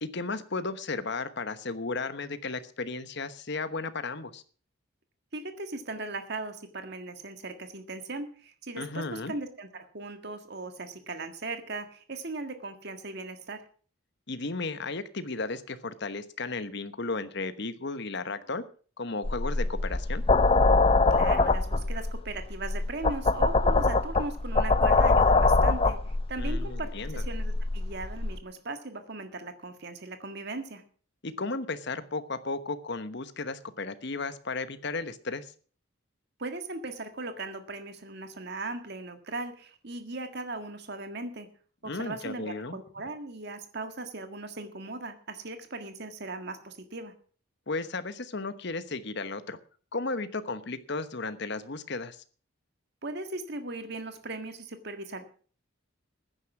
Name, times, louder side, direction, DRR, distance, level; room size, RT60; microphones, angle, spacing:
voice 1, 0.0-4.4 8.8-9.3 14.3-18.6 19.0-20.2 26.4-27.2 31.2-35.5 41.8-42.8 47.7-49.6 49.9-52.2, left 3 dB, 55° left, 12 dB, 1.1 m, -34 dB
voice 2, 5.3-13.6 21.1-30.8 36.4-41.5 41.8-47.1 53.0-55.2, right 2 dB, 50° right, 8 dB, 1.7 m, -38 dB
sound 1, 19.2-28.4, left 3 dB, 25° left, 0.6 m, -24 dB
15.0 x 9.9 x 6.0 m, 0.43 s
head